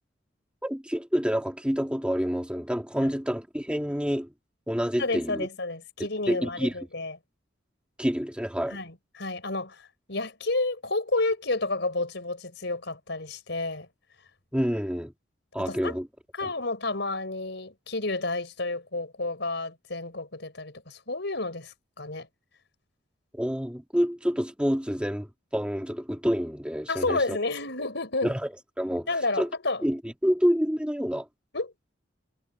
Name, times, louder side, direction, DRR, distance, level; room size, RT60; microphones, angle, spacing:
voice 1, 0.6-4.3 4.7-5.5 6.3-6.7 8.0-8.8 14.5-15.1 15.5-16.1 16.4-16.5 23.3-25.3 25.5-27.4 28.2-28.5 28.8-29.1 29.4-29.5 29.8-31.3, equal, 5° right, 2.0 m, -28 dB
voice 2, 5.0-7.2 8.7-13.9 15.6-16.0 16.3-22.3 26.9-28.3 29.1-29.8 31.5-31.7, left 2 dB, 65° left, 5.8 m, -30 dB
head